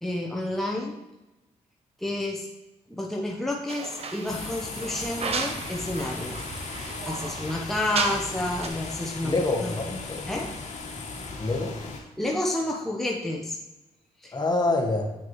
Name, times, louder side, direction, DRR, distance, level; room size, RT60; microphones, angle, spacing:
voice 1, 0.0-1.0 2.0-2.5 2.9-9.8 10.3-10.5 12.2-13.6 14.2-14.4, left 1 dB, ahead, -1 dB, 0.9 m, -30 dB
sound 1, 3.7-8.4 8.6-8.7, right 4 dB, 50° right, 0.9 m, -34 dB
sound 2, 4.3-12.0, left 3 dB, 65° left, 1.4 m, -37 dB
voice 2, 9.2-10.3 11.4-11.8 14.3-15.1, left 2 dB, 30° left, 2 dB, 1.4 m, -26 dB
9.1 x 5.9 x 3.1 m, 1.0 s
cardioid pair, 75°, 13 cm